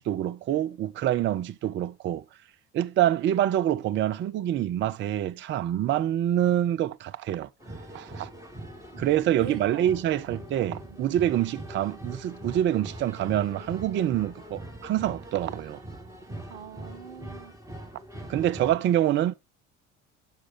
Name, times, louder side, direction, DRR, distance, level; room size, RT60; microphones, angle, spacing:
voice 1, 0.0-2.2 2.7-7.5 7.9-8.3 9.0-15.8 18.3-19.3, right 12 dB, 30° right, 0.5 m, -26 dB
sound 1, 7.6-18.8, right 1 dB, 10° right, 2.5 m, -42 dB
voice 2, 8.9-10.0 10.8-11.0 16.5-17.6, right 7 dB, 70° right, 1.1 m, -43 dB
8.7 x 6.2 x 3.6 m
figure-of-eight pair, 60°, 39 cm